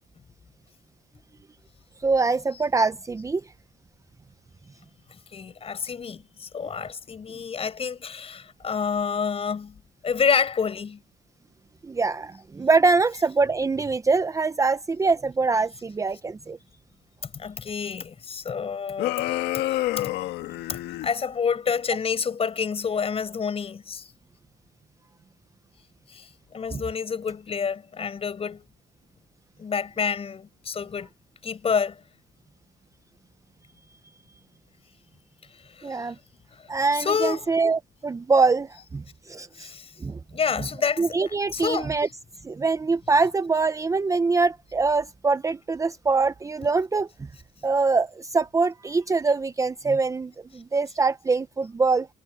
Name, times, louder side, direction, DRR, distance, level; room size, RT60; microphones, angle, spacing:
voice 1, 2.0-3.4 11.8-16.6 26.7-26.8 35.8-36.2 36.7-39.7 40.0-40.2 41.0-42.1 42.4-47.1 47.6-52.1, right 4 dB, 20° right, 0.7 m, -24 dB
voice 2, 5.3-9.8 10.0-11.0 17.2-19.2 19.7-20.1 20.7-24.1 26.1-28.6 29.6-31.1 31.4-32.0 35.7-36.1 36.9-37.5 39.5-39.9 40.3-41.1 41.5-41.9, left 6 dB, 35° left, 5.6 m, -28 dB
sound 1, 19.0-21.1, left 15 dB, 85° left, 1.5 m, -28 dB
cardioid pair, 110°, 17 cm